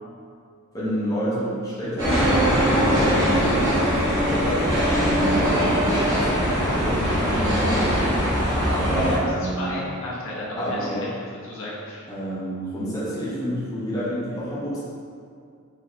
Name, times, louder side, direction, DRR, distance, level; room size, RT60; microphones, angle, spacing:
voice 1, 0.7-9.7 10.6-11.0 12.1-14.8, equal, 15° left, -10 dB, 0.9 m, -29 dB
sound 1, 2.0-9.2, equal, 20° right, 1.4 m, -21 dB
voice 2, 8.9-11.1 11.4-12.0, left 1 dB, 60° left, -7 dB, 1.0 m, -30 dB
5.0 x 3.0 x 3.0 m, 2.3 s
head